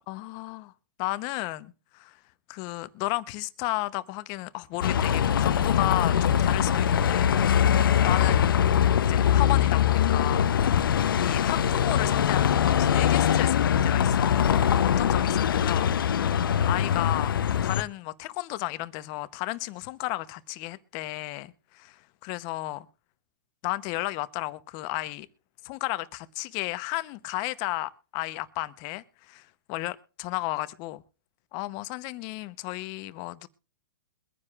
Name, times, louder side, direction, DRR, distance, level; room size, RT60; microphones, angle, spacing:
voice 1, 0.1-0.7 1.0-2.2 2.5-7.3 7.7-8.5 9.0-10.9 11.2-15.9 16.6-22.9 23.6-25.3 25.6-31.0 31.5-33.5, left 19 dB, 40° left, 0.8 m, -33 dB
Bus, 4.8-17.8, left 9 dB, 85° left, 0.7 m, -22 dB
23.0 x 9.8 x 2.4 m
hypercardioid pair, 135°, 11 cm